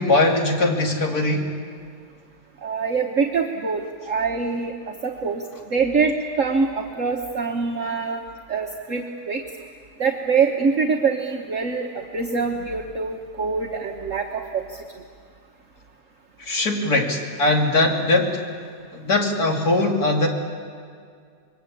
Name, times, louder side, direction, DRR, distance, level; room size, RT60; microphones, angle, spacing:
voice 1, 0.0-1.5 16.4-18.4 18.9-20.3, left 2 dB, 65° left, 1 dB, 3.3 m, -20 dB
voice 2, 2.6-4.7 5.0-8.2 8.5-9.4 10.0-15.0, right 5 dB, 50° right, 1 dB, 1.6 m, -24 dB
27.0 x 22.0 x 8.5 m, 2.2 s
omnidirectional pair, 1.8 m